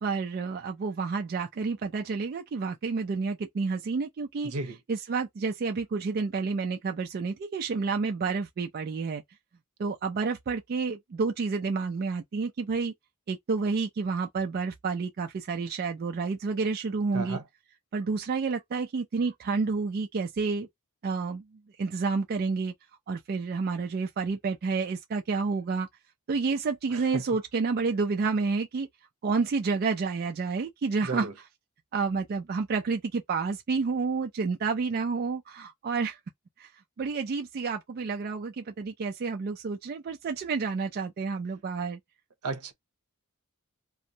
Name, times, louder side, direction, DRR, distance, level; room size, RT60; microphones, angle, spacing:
voice 1, 0.0-4.5 4.9-9.2 9.8-12.9 13.3-17.4 17.9-20.7 21.0-21.4 21.8-22.7 23.1-25.9 26.3-28.9 29.2-31.3 31.9-36.2 36.6-36.7 37.0-42.0, right 4 dB, 45° right, 0.3 m, -29 dB
voice 2, 4.4-4.8 17.1-17.4 26.9-27.2 31.0-31.3 42.4-42.7, right 3 dB, 80° right, 0.7 m, -34 dB
2.6 x 2.0 x 2.7 m
head